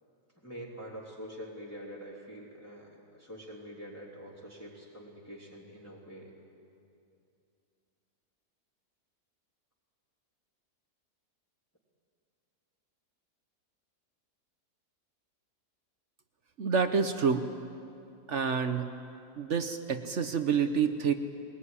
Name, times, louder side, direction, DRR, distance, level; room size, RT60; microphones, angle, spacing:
voice 1, 0.3-6.3, equal, 10° left, -4 dB, 3.3 m, -45 dB
voice 2, 16.6-17.5 18.3-18.9 19.4-21.1, right 6 dB, 55° right, 8 dB, 1.1 m, -28 dB
21.5 x 20.0 x 9.8 m, 2.6 s
omnidirectional pair, 1.7 m